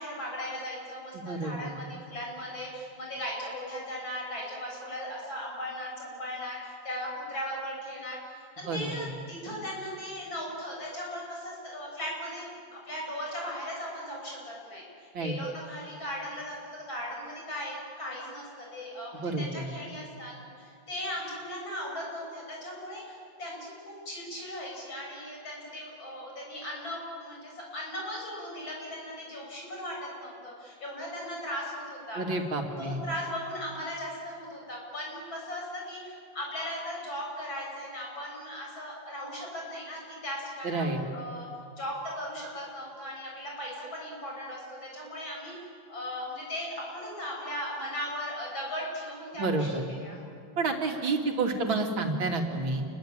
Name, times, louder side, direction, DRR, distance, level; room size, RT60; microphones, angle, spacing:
voice 1, 0.0-12.5 12.8-14.8 15.1-32.2 32.6-41.5 41.8-45.5 45.9-50.2, equal, 85° left, -2 dB, 8.3 m, -38 dB
voice 2, 1.1-1.7 8.7-9.1 15.1-15.3 19.2-19.6 32.2-33.0 40.6-41.0 49.4-49.8 50.6-52.8, right 3 dB, 90° right, 2 dB, 3.4 m, -29 dB
28.5 x 22.5 x 9.0 m, 2.4 s
omnidirectional pair, 2.1 m